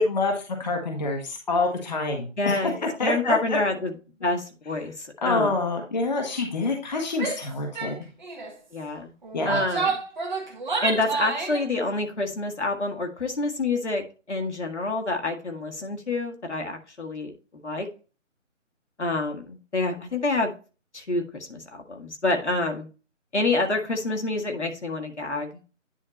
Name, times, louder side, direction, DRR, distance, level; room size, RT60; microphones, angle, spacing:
voice 1, 0.0-3.6 5.2-8.0 9.3-9.6, left 3 dB, 35° left, 2 dB, 1.2 m, -26 dB
voice 2, 2.4-2.8 3.0-3.9 4.2-5.5 8.7-9.1 9.4-10.0 10.8-17.9 19.0-20.5 20.9-22.9 23.3-25.5, left 2 dB, 60° left, 3 dB, 1.7 m, -27 dB
Female speech woman speaking / Yell, 7.1-7.5 7.8-7.9 8.2-8.5 9.2-11.6, right 4 dB, 35° right, 1.5 m, -29 dB
10.0 x 3.6 x 4.1 m, 0.33 s
figure-of-eight pair, 150°, 38 cm